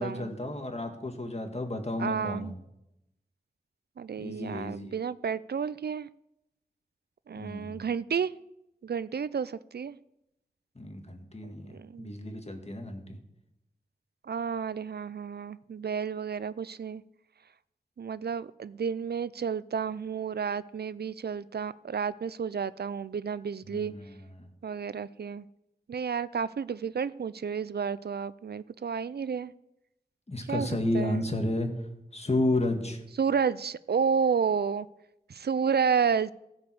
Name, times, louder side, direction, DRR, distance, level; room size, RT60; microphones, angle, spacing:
voice 1, 0.0-2.6 4.2-5.0 7.4-7.8 10.8-13.2 23.7-24.5 30.3-31.7 32.1-33.0, left 1 dB, 40° left, 4 dB, 1.8 m, -32 dB
voice 2, 2.0-2.5 4.0-6.1 7.3-8.3 8.8-10.0 11.7-12.1 14.2-17.0 18.0-23.9 24.6-25.5 25.9-29.5 30.5-31.2 33.2-34.9 35.3-36.3, right 6 dB, 75° right, 18 dB, 0.4 m, -31 dB
15.5 x 5.3 x 7.8 m, 0.86 s
wide cardioid pair, 65°, 17 cm